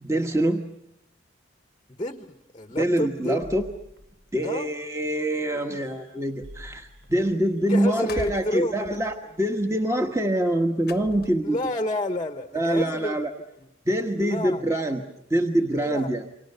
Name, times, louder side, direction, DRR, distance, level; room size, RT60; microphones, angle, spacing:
voice 1, 0.0-0.7 2.8-3.7 4.3-11.6 12.5-13.3 13.8-15.0 15.3-16.2, right 1 dB, 15° right, 5 dB, 1.3 m, -25 dB
sound 1, 1.4-1.5 2.2-2.4 3.4-5.1 5.5-8.7 9.4-9.6, left 1 dB, 85° right, 7.8 m, -49 dB
voice 2, 1.9-3.4 4.4-4.7 7.7-9.0 11.4-13.2 14.2-14.6 15.7-16.1, left 1 dB, 25° left, 9 dB, 0.9 m, -29 dB
sound 2, 7.0-7.1 7.3-7.6 7.9-11.7, left 2 dB, 50° left, 0.9 m, -41 dB
29.5 x 25.5 x 6.8 m, 0.81 s
head